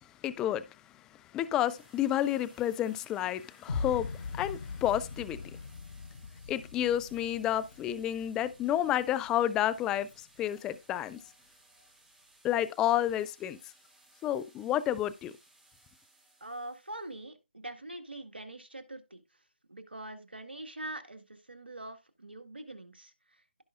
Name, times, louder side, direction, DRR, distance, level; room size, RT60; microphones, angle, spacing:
voice 1, 0.2-0.6 1.3-5.4 6.5-10.1 10.4-11.2 12.4-13.6 14.2-15.3, left 12 dB, 10° left, 0.4 m, -30 dB
sound 1, 1.7-17.1, right 2 dB, 5° right, 2.6 m, -62 dB
sound 2, 3.7-9.7, left 4 dB, 60° left, 0.7 m, -41 dB
voice 2, 16.4-19.2 19.7-23.6, right 1 dB, 85° right, 1.8 m, -44 dB
16.0 x 5.4 x 2.5 m
figure-of-eight pair, 150°, 6 cm